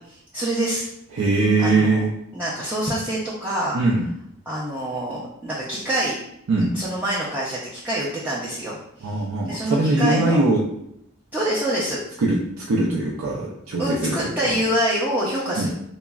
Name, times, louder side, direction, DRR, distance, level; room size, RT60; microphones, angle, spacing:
voice 1, 0.1-0.9 1.6-2.0 2.3-3.8 4.5-6.2 6.7-10.5 11.3-12.0 13.8-15.7, right 1 dB, 10° right, -7 dB, 0.4 m, -26 dB
voice 2, 1.1-2.1 3.7-4.1 6.5-6.7 9.0-10.6 12.2-14.5 15.6-15.7, right 2 dB, 75° right, -4 dB, 0.4 m, -21 dB
3.5 x 2.0 x 2.2 m, 0.78 s
head